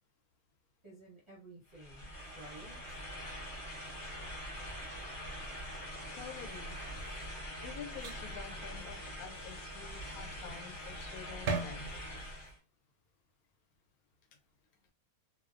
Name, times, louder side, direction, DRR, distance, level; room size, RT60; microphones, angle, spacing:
voice 1, 0.8-3.0, right 1 dB, 30° right, -7 dB, 0.6 m, -54 dB
sound 1, 1.7-12.6, equal, 40° left, 0.9 m, -44 dB
sound 2, 2.1-12.5, right 4 dB, 70° right, 0.9 m, -46 dB
voice 2, 6.2-6.8 7.6-11.9, left 7 dB, 85° left, 6 dB, 1.1 m, -48 dB
2.6 x 2.0 x 2.4 m, 0.30 s
omnidirectional pair, 1.5 m